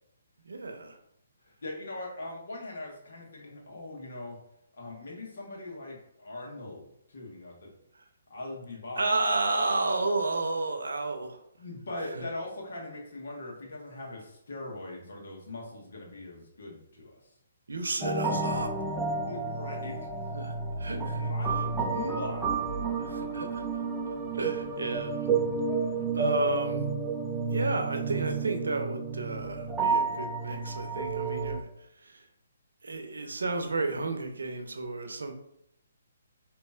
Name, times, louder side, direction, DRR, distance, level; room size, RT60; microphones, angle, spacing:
voice 1, 0.4-1.0 8.0-8.1 9.0-11.4 12.1-12.2 17.7-18.7 20.3-21.3 23.0-23.8 24.3-25.3 26.1-26.9 27.5-31.7 32.0-32.3 32.8-35.3, right 3 dB, 80° right, 5 dB, 0.7 m, -32 dB
voice 2, 1.4-4.4 4.8-7.7 8.3-9.1 11.6-17.3 19.3-20.0 20.8-22.4, left 2 dB, 65° left, -2 dB, 1.2 m, -41 dB
sound 1, 18.0-31.6, right 4 dB, 5° right, 0.6 m, -31 dB
5.2 x 2.9 x 2.4 m, 0.77 s
figure-of-eight pair, 140°, 0 cm